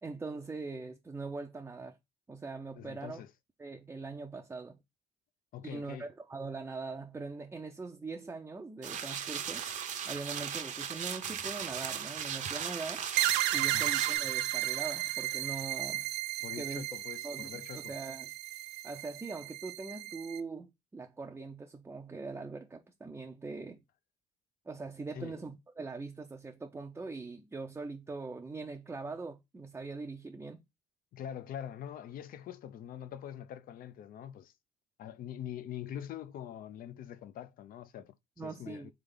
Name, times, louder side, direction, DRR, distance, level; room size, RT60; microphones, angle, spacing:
voice 1, 0.0-2.0 2.3-3.2 3.6-4.8 5.6-9.7 10.1-13.0 13.5-16.1 16.6-16.8 17.2-18.3 18.8-23.8 24.7-30.6 38.4-38.9, right 3 dB, 15° right, 0.5 m, -42 dB
voice 2, 2.7-3.3 5.5-6.1 13.5-13.9 16.4-17.9 25.1-25.4 31.1-34.5 35.0-38.9, left 10 dB, 55° left, 0.5 m, -44 dB
sound 1, 8.8-14.2, right 8 dB, 45° right, 0.7 m, -37 dB
sound 2, 13.2-20.4, right 15 dB, 85° right, 0.4 m, -34 dB
3.5 x 3.4 x 3.8 m
cardioid pair, 110°, 17 cm